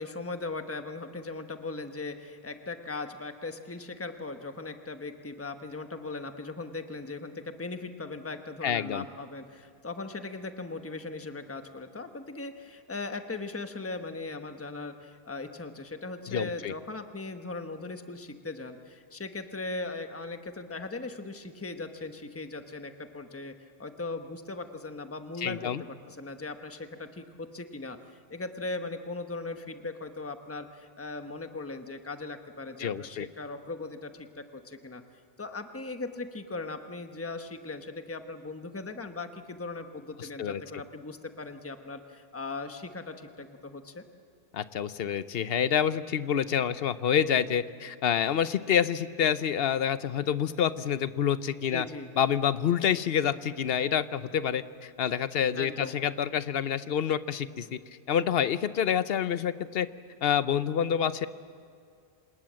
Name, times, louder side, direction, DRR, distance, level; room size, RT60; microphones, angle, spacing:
voice 1, 0.0-23.5 23.8-35.0 35.4-44.0 51.7-52.1 55.5-56.0, left 3 dB, 15° left, 7 dB, 1.1 m, -39 dB
voice 2, 8.6-9.1 16.3-16.7 25.4-25.8 32.8-33.3 40.2-40.6 44.5-51.9 52.2-57.8 58.1-59.9 60.2-61.3, left 8 dB, 65° left, 14 dB, 0.9 m, -27 dB
27.0 x 19.5 x 7.6 m, 2.3 s
omnidirectional pair, 1.1 m